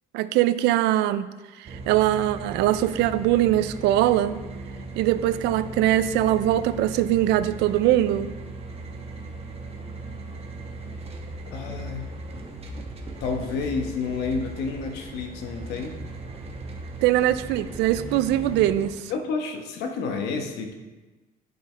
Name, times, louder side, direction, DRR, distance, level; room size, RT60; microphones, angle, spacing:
voice 1, 0.1-1.3 1.6-4.4 5.0-8.3 17.0-19.1, right 13 dB, 90° right, 14 dB, 0.4 m, -22 dB
sound 1, 1.7-18.9, right 2 dB, 35° right, 1.1 m, -38 dB
voice 2, 11.5-12.1 13.2-16.0 19.1-20.7, left 4 dB, 80° left, 4 dB, 1.1 m, -30 dB
10.5 x 5.5 x 3.3 m, 1.2 s
cardioid pair, 110°, 17 cm